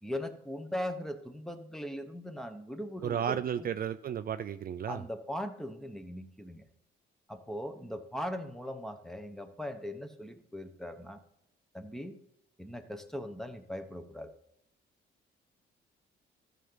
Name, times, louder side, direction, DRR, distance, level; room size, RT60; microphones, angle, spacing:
voice 1, 0.0-3.7 4.9-6.6 7.3-11.2 11.7-12.2 12.6-14.3, equal, ahead, 8 dB, 1.0 m, -39 dB
voice 2, 3.0-5.0, right 9 dB, 50° right, 11 dB, 0.4 m, -33 dB
13.0 x 6.7 x 3.9 m, 0.78 s
cardioid pair, 90°, 20 cm